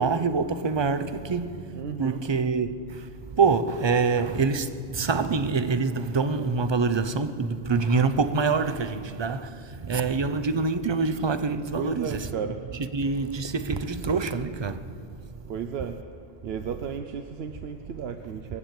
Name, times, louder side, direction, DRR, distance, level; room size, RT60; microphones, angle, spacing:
voice 1, 0.0-12.3 12.7-15.0, right 4 dB, 35° right, 0.5 m, -26 dB
voice 2, 1.7-2.3 11.7-12.6 15.5-15.9 16.4-18.6, right 7 dB, 75° right, 0.9 m, -34 dB
21.5 x 8.8 x 7.4 m
omnidirectional pair, 1.1 m